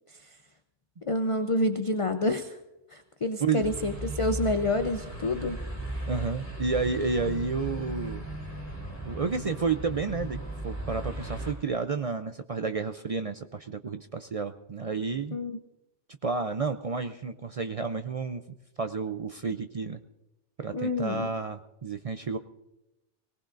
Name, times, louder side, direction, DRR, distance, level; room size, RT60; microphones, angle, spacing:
voice 1, 1.1-2.6 2.9-5.6 15.3-15.6 20.7-21.3, left 1 dB, 35° left, 7 dB, 0.6 m, -28 dB
sound 1, 3.6-11.5, right 1 dB, 15° right, 3.5 m, -36 dB
voice 2, 6.1-8.3 9.0-15.4 16.2-18.4 18.8-20.0 20.6-22.4, right 4 dB, 55° right, 8 dB, 0.4 m, -31 dB
23.0 x 18.5 x 2.5 m, 0.94 s
omnidirectional pair, 1.2 m